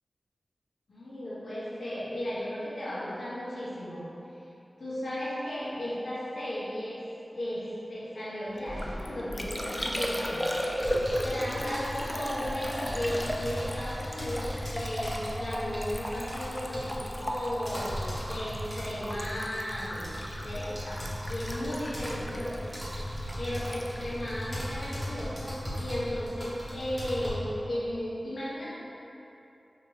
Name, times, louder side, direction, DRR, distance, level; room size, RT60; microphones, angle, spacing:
voice 1, 0.9-4.0 4.4-4.5 4.8-7.0 7.3-10.4 11.2-22.7 23.4-28.7, equal, 80° left, -10 dB, 0.9 m, -35 dB
Liquid, 8.6-25.2 25.5-26.0, equal, 15° left, 0.3 m, -36 dB
Thunder, 8.6-14.1 14.4-15.9 16.2-17.9, equal, 75° right, 1.1 m, -46 dB
sound 1, 10.8-27.3, equal, ahead, 1.3 m, -37 dB
3.7 x 2.8 x 3.1 m, 2.9 s
cardioid pair, 40°, 0 cm